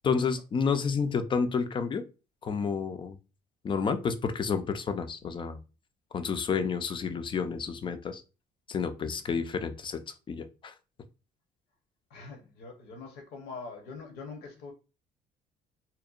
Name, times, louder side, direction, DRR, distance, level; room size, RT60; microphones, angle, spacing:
voice 1, 0.0-2.0 2.4-3.2 3.6-5.6 6.1-8.2 8.7-10.0 10.3-10.7, left 5 dB, 30° left, 0.4 m, -30 dB
voice 2, 8.8-9.2 12.1-14.7, left 4 dB, 75° left, 0.8 m, -44 dB
2.7 x 2.1 x 2.4 m
cardioid pair, 110°, 17 cm